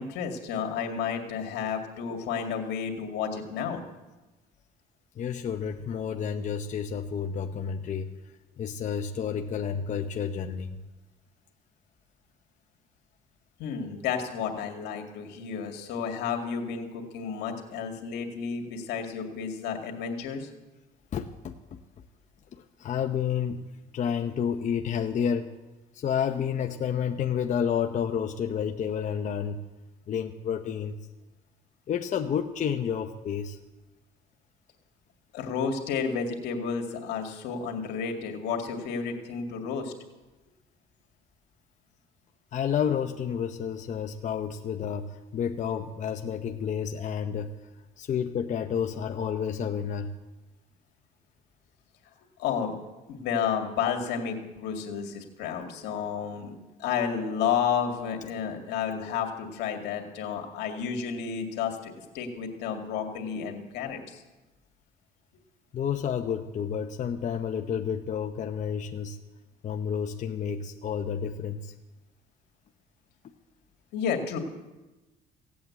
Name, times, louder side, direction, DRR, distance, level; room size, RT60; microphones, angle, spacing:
voice 1, 0.0-3.8 13.6-20.5 35.3-39.9 52.4-52.8 53.1-56.5 56.8-64.2 73.9-74.4, left 7 dB, 85° left, 3 dB, 2.2 m, -31 dB
voice 2, 5.2-8.1 8.6-10.8 21.1-21.8 22.5-23.6 23.9-25.5 25.9-29.6 30.1-31.0 31.9-33.6 42.5-47.5 48.0-50.1 65.7-69.2 69.6-71.7, left 7 dB, 45° left, 4 dB, 0.8 m, -30 dB
16.5 x 8.6 x 8.4 m, 1.1 s
cardioid pair, 110°, 17 cm